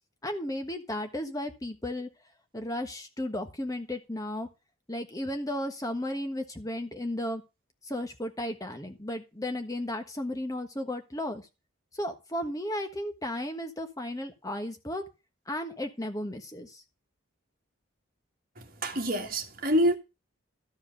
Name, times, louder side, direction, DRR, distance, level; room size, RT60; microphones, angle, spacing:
voice 1, 0.2-2.1 2.5-4.5 4.9-7.4 7.8-11.5 11.9-15.0 15.5-16.8, left 1 dB, 15° left, 1.3 m, -34 dB
voice 2, 18.6-20.0, equal, 45° right, 1.8 m, -27 dB
13.0 x 5.0 x 6.6 m
head